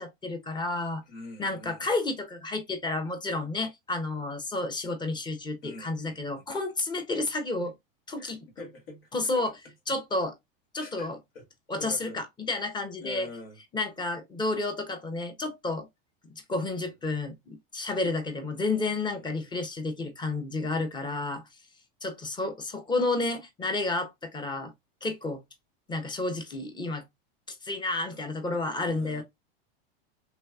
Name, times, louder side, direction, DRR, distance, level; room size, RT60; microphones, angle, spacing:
voice 1, 0.0-1.0 1.4-7.7 8.1-8.4 9.1-9.5 9.9-10.3 10.7-11.2 11.7-13.3 13.7-15.9 16.5-21.4 22.0-24.7 25.0-25.4 25.9-27.0 27.6-29.2, left 2 dB, 15° left, 0.8 m, -31 dB
voice 2, 1.1-1.8 5.6-6.2 8.2-9.1 9.3-9.4 10.8-11.5 11.8-12.2 13.0-13.6 19.2-19.5 28.8-29.2, left 2 dB, 80° left, 1.7 m, -44 dB
3.3 x 3.0 x 2.3 m
supercardioid pair, 120°, 29 cm